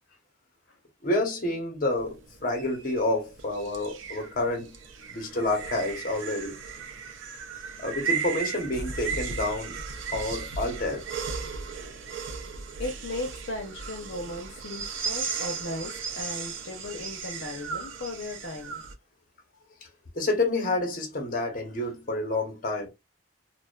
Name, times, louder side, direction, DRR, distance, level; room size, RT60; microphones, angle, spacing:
voice 1, 1.0-4.8 5.1-6.6 7.8-9.8 10.1-11.1 20.1-22.9, left 2 dB, 45° left, 0.9 m, -29 dB
sound 1, 2.0-18.9, right 5 dB, 80° right, 0.5 m, -36 dB
voice 2, 12.8-18.8 21.8-21.9, left 2 dB, 70° left, 0.6 m, -36 dB
2.5 x 2.3 x 2.2 m
head